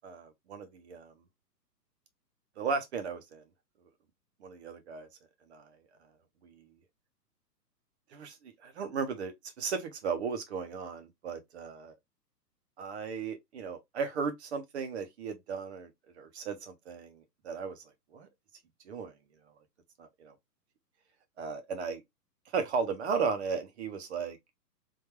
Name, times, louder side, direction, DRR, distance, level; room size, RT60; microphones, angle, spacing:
voice 1, 0.0-1.1 2.6-3.4 4.4-5.1 5.5-5.7 6.4-6.5 8.1-11.9 12.8-15.9 16.2-17.8 18.1-18.3 18.9-19.1 20.0-20.3 21.4-22.0 22.5-24.4, right 5 dB, 40° right, 0.8 m, -35 dB
3.8 x 2.6 x 3.0 m
figure-of-eight pair, 125°, 50 cm